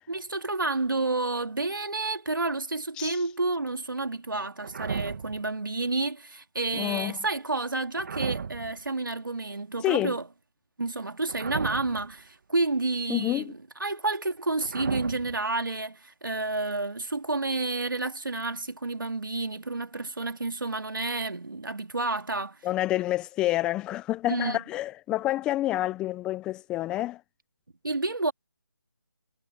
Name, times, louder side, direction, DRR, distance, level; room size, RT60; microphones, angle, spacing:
voice 1, 0.1-10.2 10.8-22.7 24.3-24.6 27.8-28.3, right 3 dB, 85° right, 2.5 m, -30 dB
sound 1, 4.6-5.5 7.9-8.9 11.3-12.2 14.6-15.4, right 6 dB, 45° right, 2.1 m, -34 dB
voice 2, 6.7-7.2 9.8-10.2 13.1-13.5 22.6-27.2, left 15 dB, 10° left, 0.7 m, -28 dB
figure-of-eight pair, 160°, 11 cm